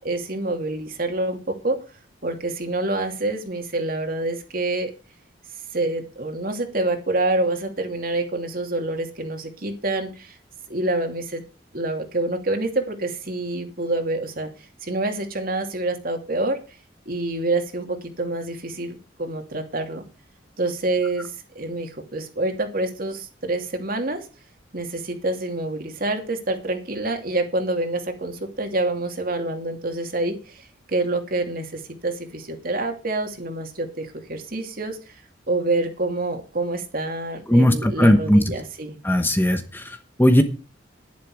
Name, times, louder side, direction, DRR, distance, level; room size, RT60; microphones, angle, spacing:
voice 1, 0.0-1.8 2.2-4.9 5.7-10.4 10.7-11.4 11.7-14.5 14.8-16.6 17.1-20.0 20.6-24.3 24.7-35.1 35.5-39.0, right 2 dB, 50° right, 5 dB, 2.8 m, -27 dB
voice 2, 37.5-38.4 39.0-39.6 40.2-40.4, equal, 10° left, 8 dB, 1.0 m, -16 dB
11.0 x 10.5 x 5.0 m, 0.33 s
head